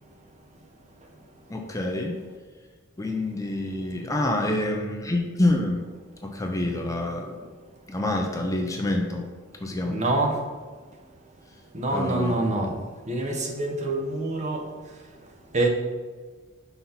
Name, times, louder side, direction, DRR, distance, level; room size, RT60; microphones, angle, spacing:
voice 1, 1.5-2.2 3.0-5.8 6.2-7.4 7.9-9.2 9.6-9.9 11.9-12.4, left 1 dB, 15° left, 1 dB, 0.6 m, -27 dB
voice 2, 9.9-10.4 11.7-12.7 13.1-14.6 15.5-15.7, right 2 dB, 35° right, 1 dB, 1.0 m, -25 dB
5.6 x 4.1 x 5.7 m, 1.5 s
head